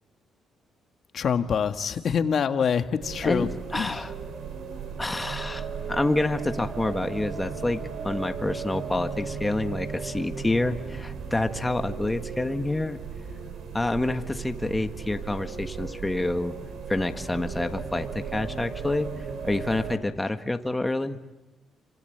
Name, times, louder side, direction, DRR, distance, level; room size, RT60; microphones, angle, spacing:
voice 1, 1.1-3.5 3.7-4.0, left 7 dB, 55° left, 8 dB, 1.7 m, -25 dB
sound 1, 3.0-20.0, right 6 dB, 75° right, 4.8 m, -36 dB
voice 2, 3.2-4.1 5.0-13.0 13.7-16.6 16.9-19.1 19.4-21.2, left 2 dB, 15° left, 7 dB, 1.7 m, -28 dB
28.5 x 26.0 x 8.1 m, 1.1 s
cardioid pair, 90°, 0 cm